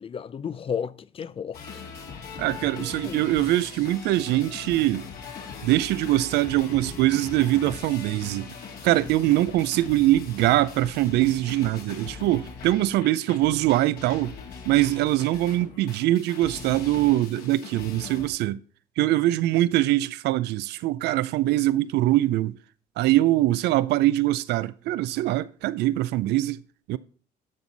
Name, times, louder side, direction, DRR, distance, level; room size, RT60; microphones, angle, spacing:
voice 1, 0.0-1.8 2.7-3.2, left 7 dB, 35° left, 0.5 m, -33 dB
sound 1, 1.5-18.3, left 5 dB, 65° left, 2.9 m, -41 dB
voice 2, 2.4-5.1 5.6-8.5 8.8-14.3 14.6-18.6 19.0-22.6 23.0-26.6 26.9-27.0, right 15 dB, 80° right, 0.5 m, -23 dB
13.0 x 6.2 x 4.0 m
cardioid pair, 110°, 17 cm